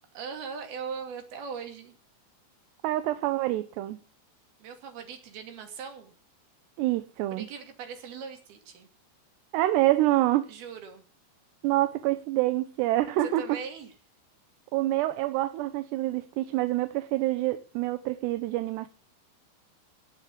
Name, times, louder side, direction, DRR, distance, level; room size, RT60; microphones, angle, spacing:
voice 1, 0.1-1.9 4.6-6.1 7.3-8.9 10.5-11.0 13.2-13.9, right 6 dB, 65° right, 5 dB, 4.3 m, -40 dB
voice 2, 2.8-4.0 6.8-7.5 9.5-10.5 11.6-13.6 14.7-18.9, right 16 dB, 80° right, 11 dB, 2.9 m, -26 dB
18.5 x 6.6 x 8.5 m, 0.39 s
omnidirectional pair, 5.0 m